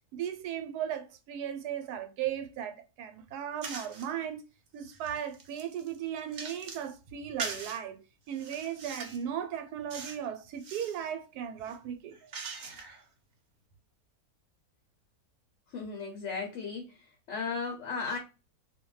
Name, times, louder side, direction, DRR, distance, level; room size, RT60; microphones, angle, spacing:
voice 1, 0.1-4.4 4.7-8.0 8.3-12.2, right 9 dB, 85° right, 1.1 m, -36 dB
sound 1, 3.6-4.1 4.7-6.9 7.4-7.8 8.3-9.3 9.9-10.2 10.5-11.0 11.6-13.0, right 4 dB, 55° right, 0.8 m, -42 dB
voice 2, 15.7-17.0 17.3-18.2, left 4 dB, 60° left, 0.8 m, -35 dB
2.6 x 2.2 x 3.0 m
omnidirectional pair, 1.7 m